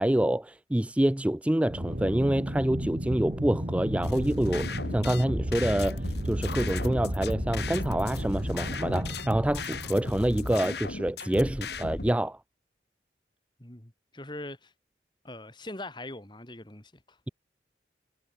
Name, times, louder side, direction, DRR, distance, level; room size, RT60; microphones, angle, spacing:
voice 1, 0.0-12.4, right 1 dB, 5° right, 0.3 m, -27 dB
Aircraft, 1.7-11.1, equal, 45° right, 3.6 m, -34 dB
sound 1, 4.0-12.1, left 3 dB, 65° left, 2.2 m, -37 dB
voice 2, 13.6-14.7 15.2-17.2, left 2 dB, 25° left, 2.6 m, -42 dB
head